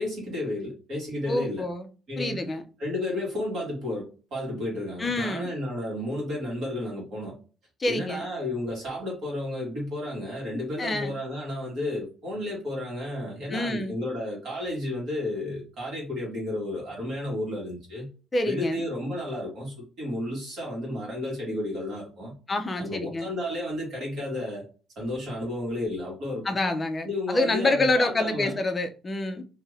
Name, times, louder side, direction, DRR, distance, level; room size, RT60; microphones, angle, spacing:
voice 1, 0.0-1.7 2.1-2.4 2.8-7.3 7.8-18.1 18.4-22.3 22.8-24.6 24.9-26.4 27.0-28.5, left 1 dB, 55° right, 1.5 m, -32 dB
voice 2, 1.3-1.9 2.2-2.6 5.0-5.5 7.8-8.3 10.8-11.1 13.5-13.9 18.3-18.8 22.5-23.3 26.4-29.4, left 2 dB, 20° left, 0.4 m, -27 dB
2.7 x 2.5 x 3.1 m
cardioid pair, 170°, 0 cm